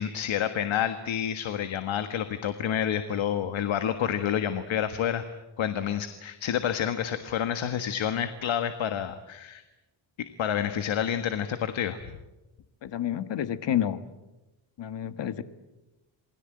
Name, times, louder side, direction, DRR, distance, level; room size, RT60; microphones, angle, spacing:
voice 1, 0.0-5.2 5.6-9.6 10.4-12.0, left 9 dB, 85° left, 9 dB, 1.6 m, -29 dB
voice 2, 12.8-14.0 14.8-15.4, left 10 dB, 65° left, 11 dB, 1.6 m, -29 dB
28.0 x 21.0 x 9.0 m, 1.0 s
wide cardioid pair, 135°, 46 cm